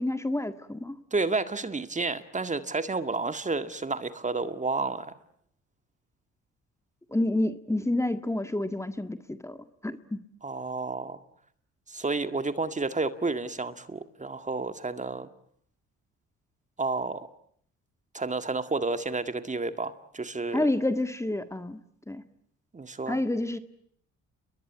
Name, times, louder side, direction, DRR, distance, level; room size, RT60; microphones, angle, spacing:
voice 1, 0.0-1.0 7.1-10.2 20.5-21.8 22.1-22.2 23.1-23.6, left 1 dB, 10° left, 10 dB, 1.8 m, -29 dB
voice 2, 1.1-5.1 10.4-11.2 11.9-15.3 16.8-17.3 18.1-20.7 22.7-23.2, right 3 dB, 25° right, 10 dB, 2.0 m, -31 dB
30.0 x 22.5 x 8.7 m, 0.67 s
cardioid pair, 90°, 30 cm